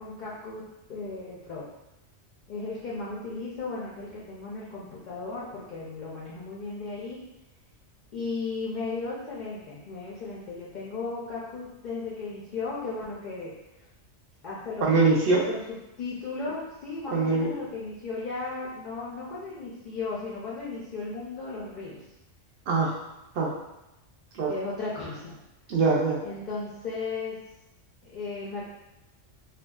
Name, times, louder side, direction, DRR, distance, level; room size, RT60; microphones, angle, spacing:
voice 1, 0.0-1.7 2.5-7.2 8.1-13.5 14.4-14.9 15.4-22.0 24.5-25.4 26.2-27.4 28.0-28.7, left 3 dB, 65° left, -6 dB, 0.4 m, -35 dB
voice 2, 14.8-15.5 17.1-17.5 22.7-22.9 23.4-23.5 24.3-24.5 25.7-26.2, right 3 dB, 60° right, -3 dB, 0.7 m, -23 dB
2.6 x 2.2 x 2.2 m, 0.93 s
omnidirectional pair, 1.3 m